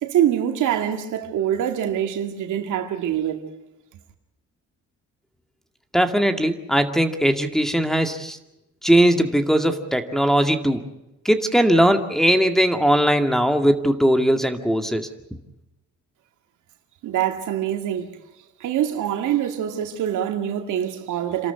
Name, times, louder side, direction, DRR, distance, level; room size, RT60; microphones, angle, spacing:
voice 1, 0.0-3.4 17.0-18.1 18.6-21.5, right 10 dB, 80° right, 2.3 m, -24 dB
voice 2, 5.9-8.4 8.8-10.8 11.2-15.1, equal, ahead, 2.1 m, -19 dB
28.0 x 13.0 x 9.6 m
cardioid pair, 90°, 30 cm